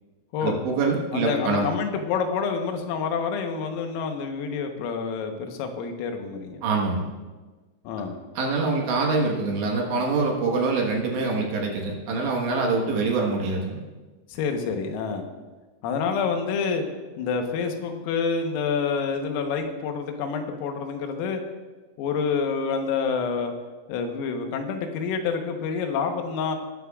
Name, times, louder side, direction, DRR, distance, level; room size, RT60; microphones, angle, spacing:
voice 1, 0.4-1.6 6.6-7.1 8.4-13.8, right 3 dB, 70° right, 0 dB, 3.3 m, -25 dB
voice 2, 1.1-6.6 7.9-8.2 14.3-15.3 15.8-16.8 17.2-21.4 22.0-23.5 23.9-26.6, left 5 dB, 85° left, 5 dB, 3.8 m, -27 dB
19.0 x 12.5 x 2.4 m, 1.3 s
omnidirectional pair, 5.9 m